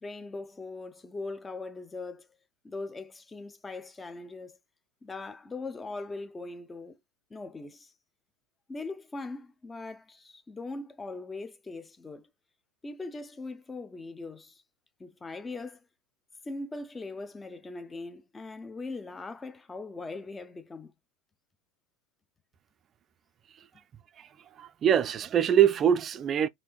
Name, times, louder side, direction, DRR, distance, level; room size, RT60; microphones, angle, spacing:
voice 1, 0.0-2.3 2.6-4.6 5.0-7.0 7.3-7.9 8.7-12.3 12.8-14.6 15.0-15.8 16.4-20.9, left 3 dB, 15° left, 0.5 m, -40 dB
voice 2, 24.6-26.5, right 9 dB, 35° right, 0.3 m, -23 dB
3.4 x 2.6 x 2.3 m
hypercardioid pair, 85°, 0 cm